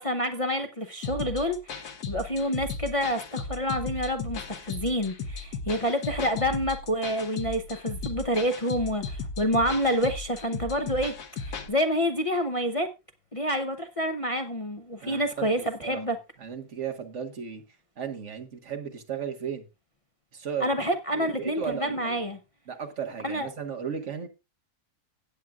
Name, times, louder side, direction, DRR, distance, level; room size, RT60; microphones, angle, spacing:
voice 1, 0.0-11.1 11.4-12.9 13.3-16.2 20.6-22.4 23.2-23.5, equal, 35° left, 0.6 m, -28 dB
sound 1, 1.0-11.7, left 4 dB, 85° left, 1.5 m, -36 dB
voice 2, 15.0-15.5 15.8-16.0 16.4-17.6 18.0-19.6 20.3-20.7 21.2-22.2 22.7-24.3, right 7 dB, 50° right, 1.7 m, -35 dB
17.0 x 7.5 x 2.4 m
omnidirectional pair, 1.6 m